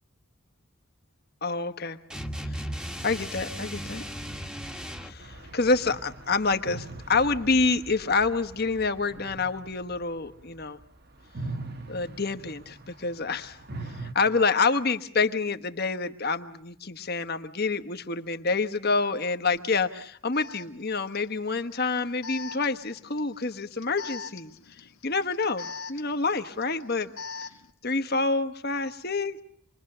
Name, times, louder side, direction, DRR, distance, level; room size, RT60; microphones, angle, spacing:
voice 1, 1.4-2.0 2.5-2.6 3.0-4.0 5.0-10.8 11.9-13.6 14.0-24.5 25.0-27.1 27.8-29.4, left 4 dB, 50° left, 8 dB, 1.2 m, -27 dB
sound 1, 2.1-5.2, equal, 5° right, 1.3 m, -36 dB
sound 2, 5.2-10.8 11.2-14.1, right 2 dB, 45° right, 1.7 m, -41 dB
Alarm, 19.5-19.6 20.3-27.7, left 5 dB, 85° left, 1.5 m, -43 dB
27.0 x 22.0 x 6.7 m, 0.67 s
head